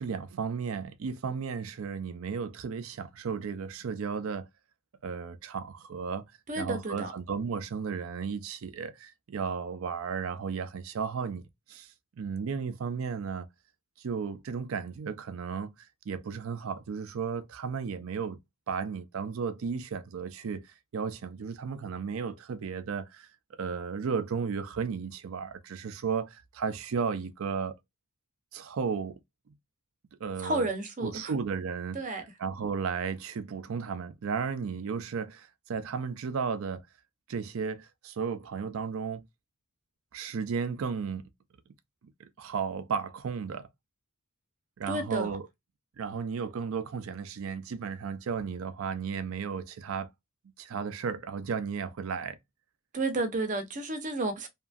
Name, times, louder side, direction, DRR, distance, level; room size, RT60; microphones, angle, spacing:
voice 1, 0.0-4.5 5.0-6.2 6.6-11.4 11.7-13.5 14.0-15.7 16.1-18.4 18.7-20.7 20.9-23.3 23.6-27.7 28.5-29.2 30.2-30.7 31.0-32.0 32.4-36.8 37.3-39.2 40.1-41.3 42.2-43.7 44.8-45.4 46.0-50.1 50.4-52.4, right 6 dB, 75° right, 0.4 m, -34 dB
voice 2, 6.5-7.1 30.4-31.3 31.9-32.2 44.9-45.4 52.9-54.5, right 2 dB, 35° right, 0.6 m, -31 dB
2.9 x 2.5 x 2.3 m
head